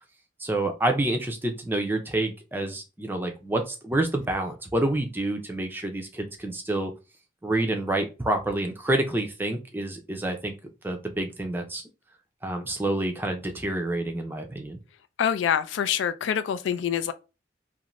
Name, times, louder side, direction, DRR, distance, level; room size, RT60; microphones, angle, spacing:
voice 1, 0.4-6.9 7.4-10.5 10.8-11.8 12.4-14.8, right 1 dB, 10° right, 0.4 m, -28 dB
voice 2, 15.2-17.1, left 8 dB, 85° left, 0.3 m, -25 dB
2.5 x 2.5 x 3.0 m
head